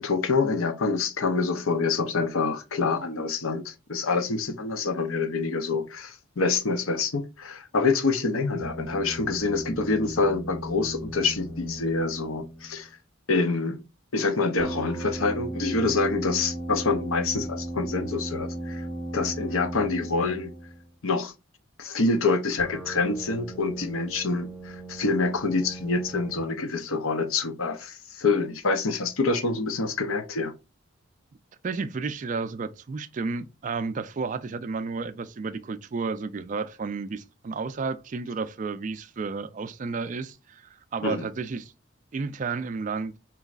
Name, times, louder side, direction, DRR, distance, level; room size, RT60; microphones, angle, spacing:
voice 1, 0.0-12.9 13.3-13.8 14.1-18.9 19.1-20.5 21.0-21.3 21.8-30.5 41.0-41.3, left 3 dB, 85° left, 0.7 m, -26 dB
sound 1, 8.6-12.9 14.6-20.9 22.6-26.4, right 1 dB, 5° left, 0.7 m, -37 dB
voice 2, 31.6-41.7 42.1-43.1, right 4 dB, 35° right, 0.3 m, -32 dB
4.6 x 3.1 x 2.4 m
head